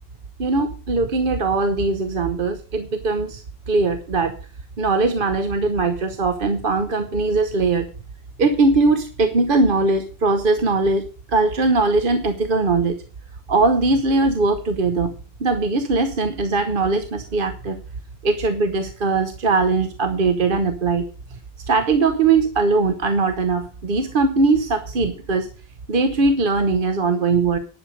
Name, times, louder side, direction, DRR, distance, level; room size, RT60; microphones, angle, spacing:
voice 1, 0.4-4.4 4.8-7.9 8.4-12.9 13.5-15.1 15.4-17.8 18.2-21.0 21.3-21.4 21.7-25.5 25.9-27.6, right 3 dB, 55° right, 7 dB, 1.1 m, -20 dB
10.5 x 7.1 x 6.4 m, 0.37 s
omnidirectional pair, 1.1 m